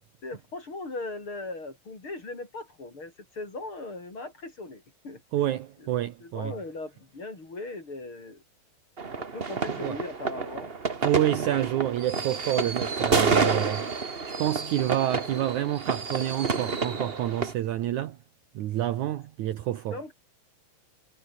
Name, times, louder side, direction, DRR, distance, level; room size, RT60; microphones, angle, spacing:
voice 1, 0.2-5.2 5.8-5.9 6.2-8.4 9.2-10.7 19.9-20.1, left 2 dB, 35° left, 6.5 m, -38 dB
voice 2, 5.3-6.5 9.7-10.0 11.0-18.2 18.6-20.0, right 12 dB, 70° right, 2.3 m, -28 dB
sound 1, 9.0-17.5, right 4 dB, 90° right, 0.5 m, -29 dB
omnidirectional pair, 4.0 m